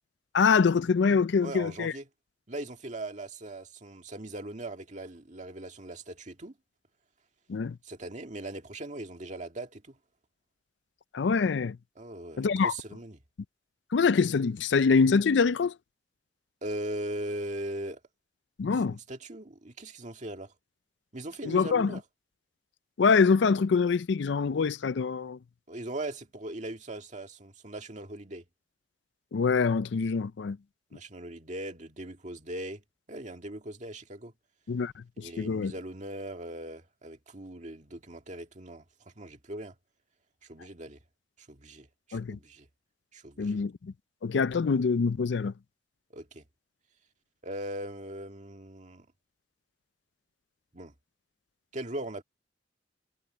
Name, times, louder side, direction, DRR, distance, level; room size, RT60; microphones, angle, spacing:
voice 1, 0.3-1.9 7.5-7.8 11.1-11.8 12.4-12.7 13.9-15.7 18.6-19.0 21.4-21.9 23.0-25.4 29.3-30.6 34.7-34.9 35.2-35.7 42.1-42.4 43.4-43.9 44.2-45.5, left 5 dB, 75° left, 0.4 m, -25 dB
voice 2, 1.4-2.1 2.5-6.5 7.8-10.0 12.0-13.2 16.6-18.0 18.7-20.5 21.1-22.0 25.7-28.5 30.9-32.8 33.1-34.3 35.2-38.8 39.2-39.8 40.5-41.0 41.5-42.7 43.1-43.6 46.1-46.4 47.4-49.1 50.7-50.9 51.7-52.2, right 1 dB, 40° right, 1.9 m, -39 dB
head